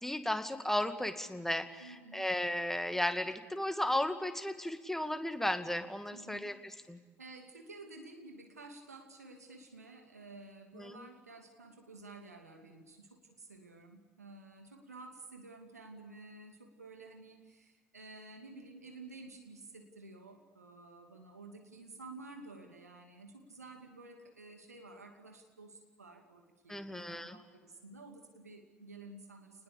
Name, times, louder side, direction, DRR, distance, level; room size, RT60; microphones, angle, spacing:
voice 1, 0.0-7.0 10.8-11.0 26.7-27.4, left 1 dB, 5° left, 9 dB, 2.2 m, -35 dB
voice 2, 1.8-2.3 6.1-6.8 7.2-29.6, right 3 dB, 85° right, 4 dB, 2.7 m, -52 dB
29.0 x 20.5 x 8.5 m, 1.4 s
figure-of-eight pair, 60°, 8 cm